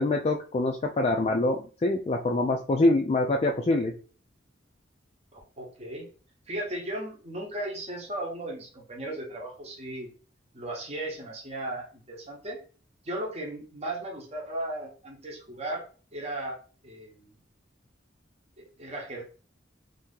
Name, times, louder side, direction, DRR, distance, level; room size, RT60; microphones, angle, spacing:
voice 1, 0.0-3.9, left 2 dB, 35° left, 2 dB, 0.3 m, -25 dB
voice 2, 5.3-6.1 6.5-10.1 10.5-12.6 13.0-15.8 16.1-16.6 16.8-17.3 18.8-19.2, right 1 dB, 35° right, -2 dB, 0.9 m, -36 dB
2.8 x 2.6 x 3.6 m, 0.38 s
head